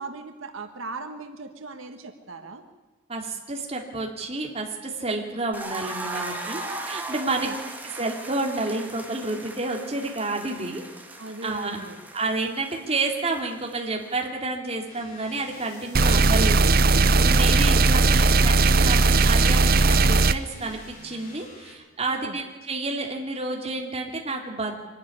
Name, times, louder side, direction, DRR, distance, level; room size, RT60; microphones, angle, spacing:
voice 1, 0.0-2.6 7.2-7.5 11.2-12.0 22.0-22.4, right 3 dB, 85° right, 6 dB, 1.6 m, -38 dB
voice 2, 3.1-7.5 7.8-10.8 11.4-11.8 12.1-24.8, right 2 dB, 30° right, 1 dB, 2.6 m, -30 dB
sound 1, 5.5-14.3, right 2 dB, 10° right, 2.0 m, -38 dB
sound 2, 14.9-21.7, left 2 dB, 40° left, 4.1 m, -48 dB
sound 3, 15.9-20.3, right 3 dB, 45° right, 0.7 m, -18 dB
24.0 x 12.5 x 9.7 m, 1.2 s
head